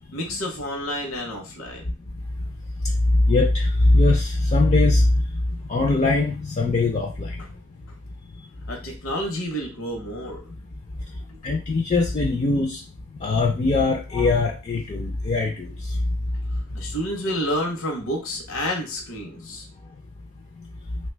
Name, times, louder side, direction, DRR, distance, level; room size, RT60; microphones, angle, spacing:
voice 1, 0.1-1.9 8.7-10.4 16.7-19.7, equal, 70° left, 2 dB, 0.7 m, -29 dB
voice 2, 3.3-5.0 5.7-7.4 11.4-12.8 13.2-15.7, left 2 dB, 30° left, 1 dB, 0.3 m, -21 dB
3.1 x 2.1 x 3.2 m, 0.31 s
head